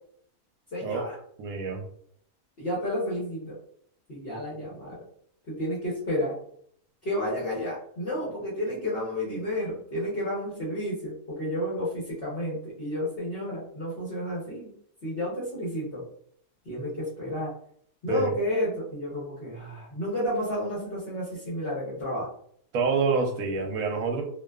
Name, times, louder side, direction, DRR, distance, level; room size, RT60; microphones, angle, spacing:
voice 1, 0.7-1.2 2.6-3.6 4.1-5.0 5.5-6.4 7.0-14.7 15.0-16.0 16.6-17.5 18.0-22.3, left 1 dB, 50° left, -8 dB, 1.0 m, -31 dB
voice 2, 1.4-1.8 18.1-18.3 22.7-24.2, right 4 dB, 85° right, 3 dB, 1.0 m, -27 dB
2.5 x 2.3 x 2.2 m, 0.64 s
omnidirectional pair, 1.4 m